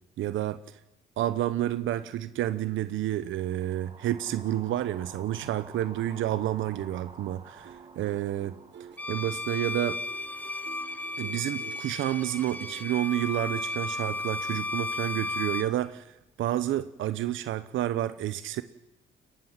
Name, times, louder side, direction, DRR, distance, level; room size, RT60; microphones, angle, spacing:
voice 1, 0.2-0.6 1.2-8.5 9.1-10.0 11.2-18.6, right 13 dB, 80° right, 13 dB, 0.9 m, -30 dB
sound 1, 3.3-11.5, right 4 dB, 25° right, 2.1 m, -51 dB
sound 2, 7.5-14.7 15.0-15.2, right 8 dB, 65° right, 1.3 m, -50 dB
Bowed string instrument, 9.0-15.8, left 2 dB, 10° left, 1.0 m, -34 dB
22.0 x 17.0 x 7.5 m, 0.94 s
cardioid pair, 90°, 20 cm